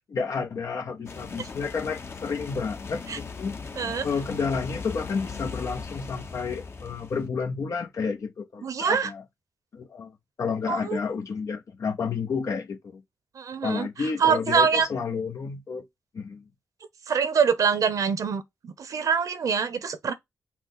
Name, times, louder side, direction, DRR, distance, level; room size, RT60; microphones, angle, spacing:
voice 1, 0.1-3.6 4.0-9.2 9.7-13.0 13.6-15.8 16.1-16.4, left 5 dB, 65° left, 0.8 m, -31 dB
sound 1, 1.1-7.2, left 4 dB, 45° left, 0.9 m, -38 dB
voice 2, 3.8-4.1 8.6-9.1 10.7-11.0 13.3-14.9 17.1-20.1, right 6 dB, 70° right, 0.8 m, -25 dB
5.8 x 2.1 x 3.9 m
wide cardioid pair, 95°, 6 cm